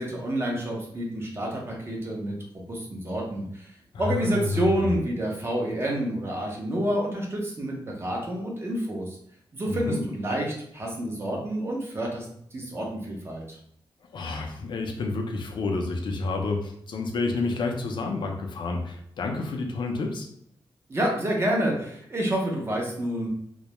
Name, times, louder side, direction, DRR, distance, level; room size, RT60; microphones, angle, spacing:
voice 1, 0.0-2.3 2.7-3.7 4.0-9.2 9.5-12.3 12.5-13.6 20.9-23.3, right 1 dB, 30° right, -1 dB, 0.6 m, -28 dB
voice 2, 3.9-5.0 9.7-10.0 14.1-20.3, left 3 dB, 65° left, 2 dB, 0.4 m, -29 dB
2.2 x 2.0 x 2.8 m, 0.66 s
wide cardioid pair, 150°, 9 cm